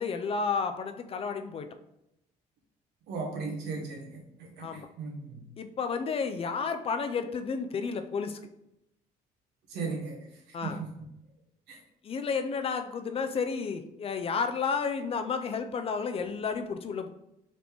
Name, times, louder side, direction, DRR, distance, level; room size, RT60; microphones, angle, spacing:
voice 1, 0.0-1.6 4.6-4.9 5.6-8.4 10.5-10.8 12.0-17.1, left 5 dB, 35° left, 7 dB, 0.4 m, -31 dB
voice 2, 3.1-5.4 9.7-10.2 10.6-10.9 11.7-11.8, right 4 dB, 90° right, 1 dB, 1.1 m, -36 dB
4.1 x 3.4 x 3.0 m, 0.82 s
cardioid pair, 110°, 17 cm